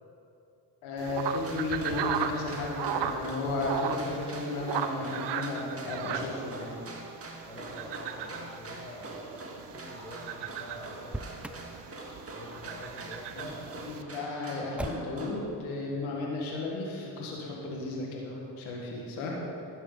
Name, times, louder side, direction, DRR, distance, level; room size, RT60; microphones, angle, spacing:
voice 1, 0.8-6.7 13.3-19.4, left 2 dB, 90° left, -2 dB, 1.8 m, -34 dB
sound 1, 1.0-14.0, right 8 dB, 60° right, 0.8 m, -37 dB
sound 2, 1.4-15.5, right 2 dB, 30° right, 1.8 m, -44 dB
voice 2, 7.4-11.7 12.3-13.9 19.0-19.3, equal, 15° left, -5 dB, 1.7 m, -46 dB
Motor vehicle (road), 11.0-11.7 14.8-15.3, right 1 dB, 5° right, 0.3 m, -38 dB
12.0 x 9.4 x 4.0 m, 2.7 s
supercardioid pair, 65°, 47 cm